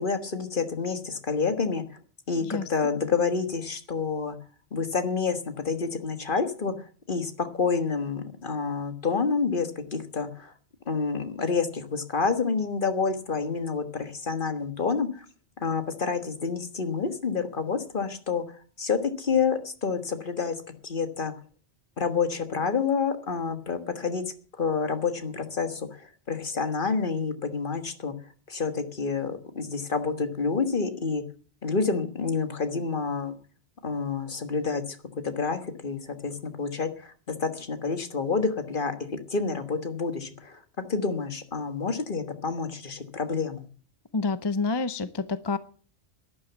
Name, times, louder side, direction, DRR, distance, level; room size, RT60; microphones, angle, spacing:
voice 1, 0.0-2.0 2.3-4.4 4.7-6.7 7.1-10.5 10.9-15.2 15.6-18.4 18.8-20.6 20.8-21.3 22.0-24.2 24.6-28.1 28.5-31.2 31.6-33.3 33.8-35.0 35.2-39.0 39.3-40.6 40.9-43.6, left 5 dB, 50° left, 8 dB, 1.7 m, -28 dB
voice 2, 2.4-2.9 44.1-45.6, left 3 dB, 30° left, 14 dB, 0.6 m, -28 dB
12.0 x 11.0 x 7.1 m, 0.41 s
omnidirectional pair, 1.1 m